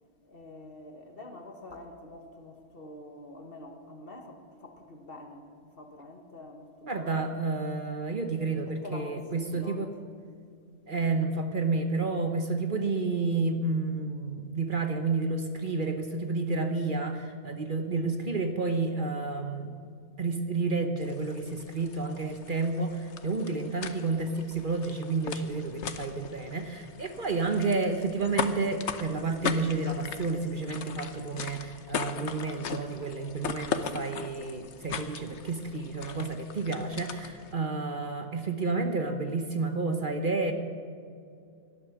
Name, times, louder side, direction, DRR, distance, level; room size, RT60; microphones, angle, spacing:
voice 1, 0.2-7.3 8.7-9.9, left 1 dB, 50° left, 4 dB, 1.7 m, -46 dB
voice 2, 6.8-9.9 10.9-19.7 20.2-40.5, right 3 dB, 45° right, 6 dB, 1.1 m, -30 dB
sound 1, 21.0-37.5, left 6 dB, 70° left, 1.2 m, -39 dB
18.0 x 12.0 x 6.1 m, 2.4 s
omnidirectional pair, 1.3 m